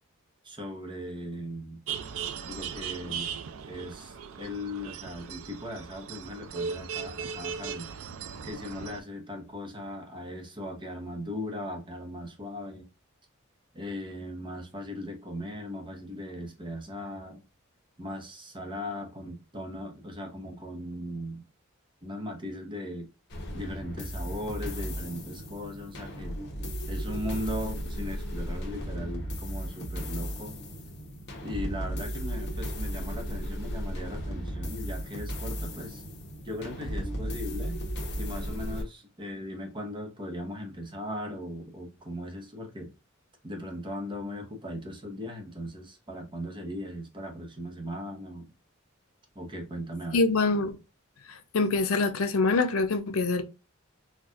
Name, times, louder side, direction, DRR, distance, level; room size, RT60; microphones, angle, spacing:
voice 1, 0.4-1.8 2.5-3.3 3.7-7.9 8.4-12.9 13.7-17.4 18.0-21.4 22.0-23.1 23.5-26.4 26.9-30.6 31.4-36.0 36.4-37.8 38.2-42.9 43.4-48.5 49.3-50.3, left 1 dB, 25° right, 0.9 m, -38 dB
sound 1, 1.9-9.0, right 6 dB, 70° right, 0.4 m, -38 dB
sound 2, 23.3-38.8, equal, 55° left, 1.0 m, -35 dB
voice 2, 50.1-50.8 51.3-53.4, left 3 dB, 80° left, 0.6 m, -25 dB
4.4 x 2.4 x 2.4 m
head